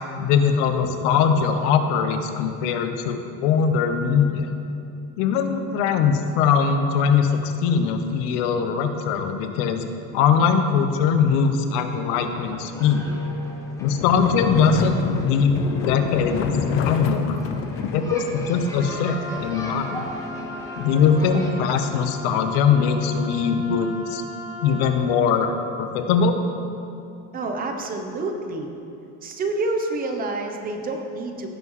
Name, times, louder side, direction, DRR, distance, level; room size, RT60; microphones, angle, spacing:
voice 1, 0.2-4.5 5.2-9.9 10.1-13.2 13.8-16.5 16.8-17.4 17.9-20.1 20.8-24.2 24.6-25.5 25.8-26.4, left 6 dB, 85° left, 7 dB, 0.9 m, -21 dB
sound 1, 12.1-21.5, left 1 dB, 10° left, 0.8 m, -38 dB
sound 2, 14.0-19.5, left 6 dB, 40° left, 0.5 m, -28 dB
Wind instrument woodwind instrument, 18.7-25.0, equal, 75° right, 2.1 m, -37 dB
voice 2, 27.3-28.7 29.2-31.5, right 2 dB, 25° right, 4 dB, 0.7 m, -28 dB
17.0 x 5.8 x 3.1 m, 2.7 s
cardioid pair, 170°, 35 cm